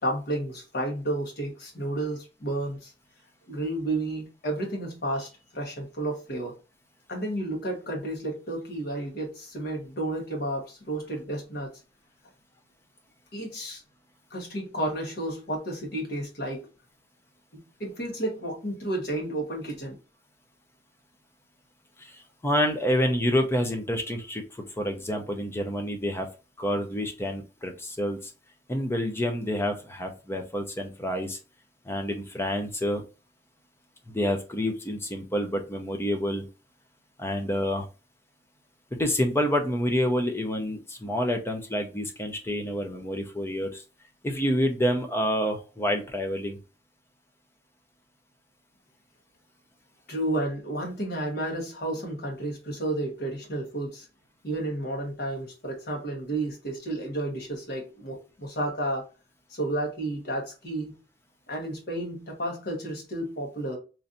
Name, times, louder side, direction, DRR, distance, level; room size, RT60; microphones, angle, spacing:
voice 1, 0.0-2.9 3.5-6.5 7.1-11.7 13.3-13.8 14.3-16.7 17.8-19.9 50.1-54.1 54.4-59.1 59.5-60.9 61.5-63.8, right 1 dB, 60° left, 1.2 m, -31 dB
voice 2, 22.0-24.4 24.8-26.3 26.6-28.3 28.7-31.4 31.9-33.0 34.1-36.5 37.2-37.9 39.0-43.8 44.2-46.6, equal, 15° left, 0.6 m, -28 dB
3.1 x 2.6 x 2.6 m
head